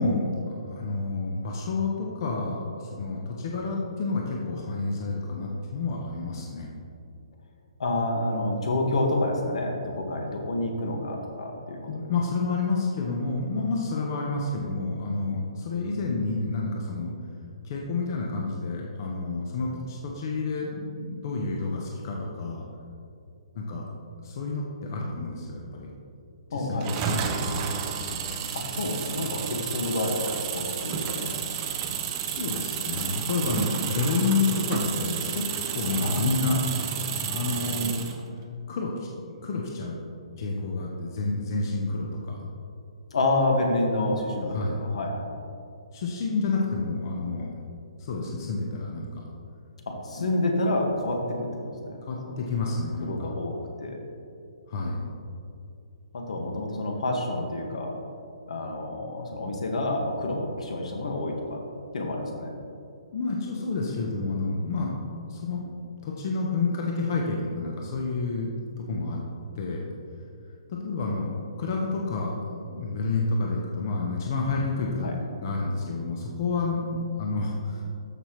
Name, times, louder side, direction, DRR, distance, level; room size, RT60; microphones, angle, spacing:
voice 1, 0.0-6.7 11.7-17.1 17.6-22.6 23.5-23.9 24.2-25.9 26.5-27.7 32.2-35.4 35.7-36.6 37.2-38.0 38.7-40.0 40.4-42.4 44.5-44.8 45.9-47.5 48.0-49.1 50.2-50.3 52.1-53.3 54.7-55.0 63.1-64.9 65.3-65.6 66.0-68.5 68.8-69.2 69.5-69.9 70.7-77.8, left 3 dB, 30° left, -1 dB, 0.8 m, -29 dB
voice 2, 7.8-11.9 26.5-27.0 28.5-31.6 36.0-36.6 43.1-45.3 49.9-52.0 52.3-52.4 53.0-54.0 56.1-57.9 58.5-61.6 61.9-62.5 75.0-75.2, left 2 dB, 70° left, 1 dB, 1.7 m, -28 dB
sound 1, 26.8-38.2, right 7 dB, 15° right, 0.5 m, -31 dB
13.5 x 5.8 x 3.1 m, 2.5 s
hypercardioid pair, 175°, 3 cm